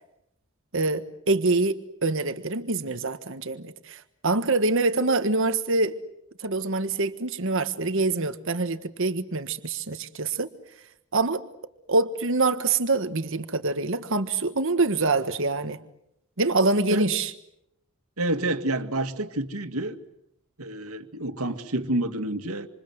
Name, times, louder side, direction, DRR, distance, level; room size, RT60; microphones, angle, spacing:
voice 1, 0.7-6.0 6.4-10.5 11.1-11.4 11.9-15.8 16.4-17.3, right 3 dB, 65° right, 10 dB, 1.5 m, -25 dB
voice 2, 18.2-20.0 20.6-22.7, right 1 dB, 90° right, 8 dB, 2.1 m, -28 dB
27.5 x 27.5 x 8.0 m, 0.78 s
head